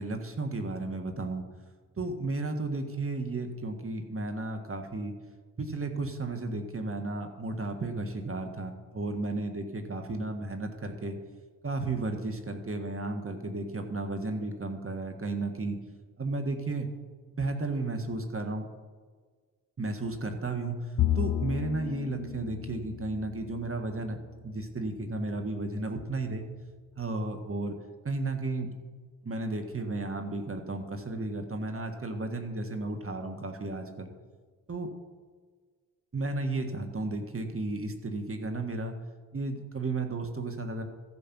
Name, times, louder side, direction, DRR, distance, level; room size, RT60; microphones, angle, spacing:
voice 1, 0.0-1.4 2.0-5.1 5.6-11.2 11.6-15.8 16.2-16.9 17.3-18.7 19.8-20.8 21.1-26.5 27.0-27.7 28.0-28.7 29.2-34.1 34.7-34.9 36.1-39.0 39.3-40.8, right 2 dB, 35° right, 5 dB, 1.7 m, -33 dB
Bowed string instrument, 21.0-24.5, left 12 dB, 60° left, 0.5 m, -33 dB
14.5 x 5.1 x 6.1 m, 1.5 s
supercardioid pair, 50°, 37 cm